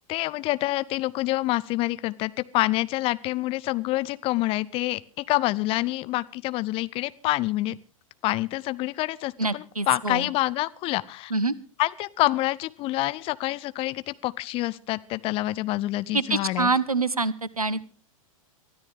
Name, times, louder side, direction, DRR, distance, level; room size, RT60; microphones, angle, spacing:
voice 1, 0.1-7.8 8.2-11.3 11.8-16.7, left 18 dB, 30° left, 17 dB, 0.7 m, -27 dB
voice 2, 9.4-10.3 11.3-11.5 16.1-17.9, right 3 dB, 85° right, 20 dB, 1.0 m, -26 dB
23.5 x 13.5 x 3.6 m, 0.36 s
figure-of-eight pair, 95°, 18 cm